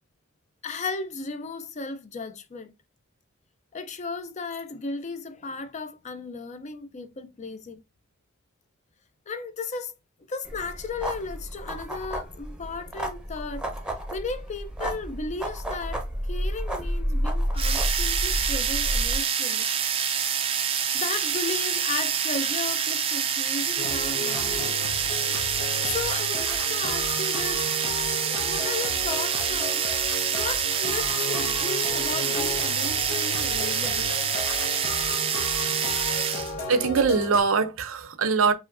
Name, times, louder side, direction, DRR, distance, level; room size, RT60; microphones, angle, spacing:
voice 1, 0.6-2.7 3.7-7.8 9.3-9.9 10.3-13.7 14.1-19.7 20.7-24.8 25.8-27.7 28.1-29.9 30.3-34.1, left 4 dB, 35° left, 0.4 m, -35 dB
sound 1, 10.4-19.2, equal, 5° right, 0.7 m, -30 dB
sound 2, 17.6-36.5, right 8 dB, 25° right, 0.4 m, -27 dB
sound 3, 23.8-37.4, left 2 dB, 85° left, 1.1 m, -34 dB
voice 2, 36.7-38.5, right 5 dB, 70° right, 0.6 m, -22 dB
4.9 x 3.0 x 2.5 m
head